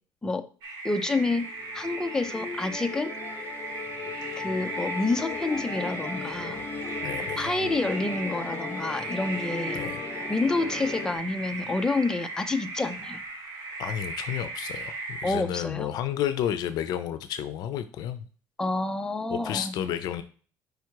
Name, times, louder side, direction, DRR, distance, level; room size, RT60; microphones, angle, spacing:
sound 1, 0.6-15.3, right 3 dB, 60° right, 1.9 m, -37 dB
voice 1, 0.8-1.5 1.7-3.1 4.4-6.6 7.4-9.8 10.3-13.2 15.2-15.9 18.6-19.7, left 3 dB, 10° left, 7 dB, 0.5 m, -28 dB
Musical instrument, 1.0-11.2, left 5 dB, 30° left, 0.8 m, -37 dB
voice 2, 7.0-7.5 9.7-10.0 13.8-18.2 19.3-20.2, left 10 dB, 70° left, 11 dB, 0.5 m, -31 dB
sound 2, 10.4-14.2, right 2 dB, 25° right, 1.4 m, -53 dB
5.2 x 4.7 x 4.6 m, 0.41 s
cardioid pair, 165°, 7 cm